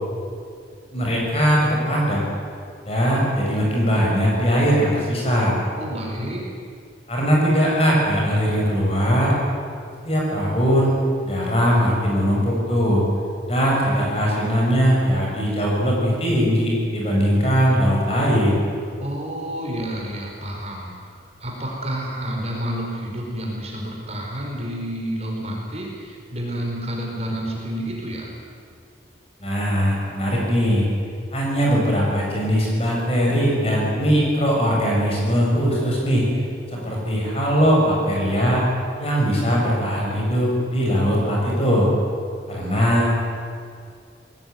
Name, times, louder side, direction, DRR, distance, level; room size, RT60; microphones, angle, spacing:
voice 1, 0.9-2.2 2.9-5.6 7.1-9.3 10.0-10.9 11.2-13.1 13.5-18.6 29.4-30.9 31.3-36.2 36.7-38.6 39.0-41.9 42.5-43.2, equal, 35° left, -3 dB, 7.2 m, -20 dB
voice 2, 5.8-6.4 19.0-28.3, equal, 35° right, -1 dB, 4.8 m, -30 dB
20.5 x 19.0 x 9.6 m, 2.2 s
head